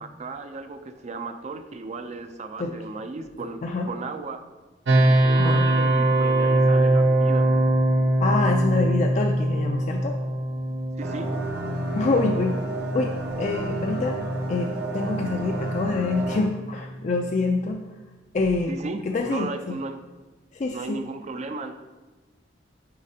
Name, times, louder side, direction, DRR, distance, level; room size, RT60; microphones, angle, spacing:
voice 1, 0.0-3.6 3.9-4.4 5.2-7.5 11.0-11.3 18.7-20.0 20.7-21.8, right 3 dB, 40° right, 8 dB, 0.4 m, -35 dB
sound 1, 4.9-17.7, right 1 dB, 90° right, 0.6 m, -23 dB
voice 2, 8.2-10.1 11.9-12.6 12.9-14.2 14.5-17.8 18.3-18.8 19.1-19.8 20.5-21.0, left 3 dB, 40° left, 2 dB, 0.4 m, -26 dB
sound 2, 11.0-16.4, right 2 dB, 60° right, 0.8 m, -32 dB
8.5 x 4.1 x 2.8 m, 1.2 s
head